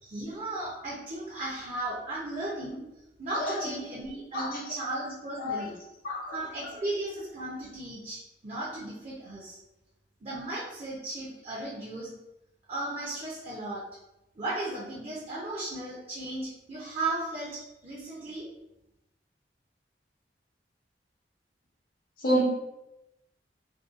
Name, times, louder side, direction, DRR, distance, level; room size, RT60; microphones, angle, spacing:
voice 1, 0.0-2.8 3.2-5.8 6.3-9.6 10.2-12.1 12.7-13.8 14.4-18.5, right 2 dB, 40° right, -6 dB, 0.5 m, -35 dB
voice 2, 3.4-3.7 4.3-4.6 5.4-5.6 6.0-6.4 22.2-22.4, equal, 50° left, -4 dB, 0.7 m, -28 dB
2.6 x 2.1 x 2.4 m, 0.91 s
head